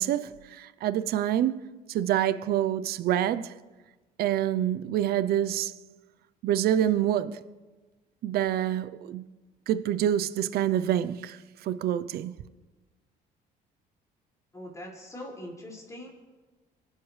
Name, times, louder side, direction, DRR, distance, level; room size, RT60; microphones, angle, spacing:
voice 1, 0.0-1.6 1.9-3.5 4.2-5.7 6.4-7.4 8.2-9.2 9.7-12.3, right 11 dB, 65° right, 0.7 m, -27 dB
voice 2, 14.5-16.1, left 1 dB, 20° left, 5.6 m, -42 dB
27.5 x 12.0 x 3.3 m
cardioid pair, 110°, 17 cm